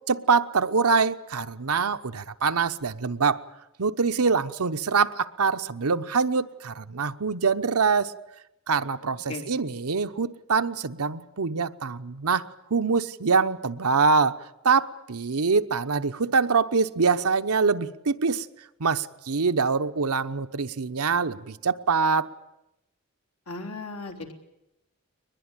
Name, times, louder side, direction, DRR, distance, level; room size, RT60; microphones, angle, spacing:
voice 1, 0.1-3.4 3.8-8.1 8.7-18.5 18.8-22.3, right 5 dB, 80° right, 0.9 m, -24 dB
voice 2, 23.5-24.3, left 3 dB, 85° left, 3.5 m, -36 dB
22.5 x 21.0 x 9.0 m
head